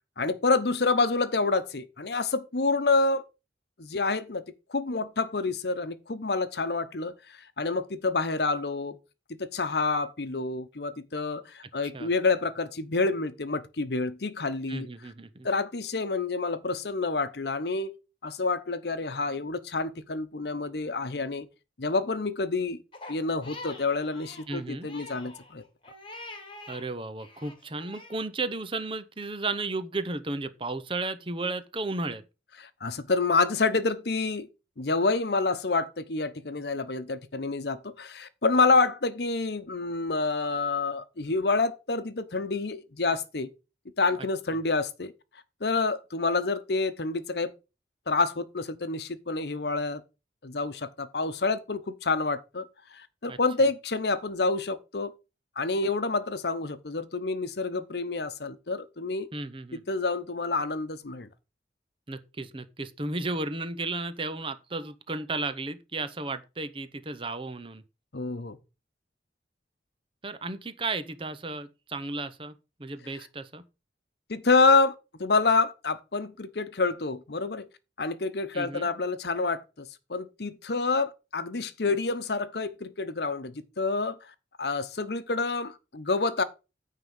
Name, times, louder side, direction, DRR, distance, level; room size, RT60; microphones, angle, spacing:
voice 1, 0.2-3.2 3.8-4.4 4.7-9.0 9.3-14.9 15.4-18.0 18.2-21.5 21.8-22.8 23.1-25.6 32.8-34.5 34.8-43.5 44.0-45.1 45.6-47.5 48.1-50.0 50.4-52.7 52.9-55.1 55.6-59.3 59.7-61.3 68.1-68.6 74.3-74.9 75.2-77.7 78.0-84.2 84.6-86.4, left 3 dB, 65° left, 0.9 m, -28 dB
voice 2, 14.7-15.5 24.5-24.9 26.7-32.2 53.3-53.4 59.3-59.8 62.1-67.8 70.2-72.5 72.8-73.6 78.5-78.9, right 3 dB, 30° right, 0.7 m, -34 dB
Crying sobbing, 22.9-26.8 27.2-28.2, left 2 dB, 30° left, 1.7 m, -45 dB
9.5 x 3.7 x 7.0 m
head